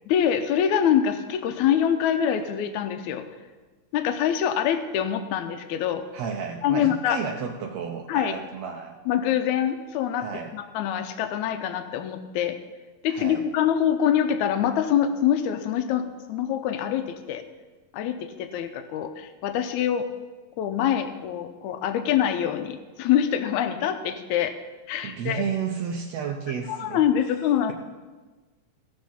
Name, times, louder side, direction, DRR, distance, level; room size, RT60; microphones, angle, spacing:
voice 1, 0.1-3.2 3.9-6.0 6.6-7.2 8.1-8.3 9.1-10.3 10.5-12.6 13.0-17.4 17.9-20.1 20.6-24.6 24.9-25.4 26.7-27.7, left 9 dB, 85° left, 8 dB, 2.1 m, -25 dB
voice 2, 6.1-9.0 10.2-10.5 13.1-13.4 25.0-27.0, right 7 dB, 75° right, 2 dB, 1.9 m, -32 dB
16.5 x 6.1 x 5.7 m, 1.3 s
omnidirectional pair, 3.3 m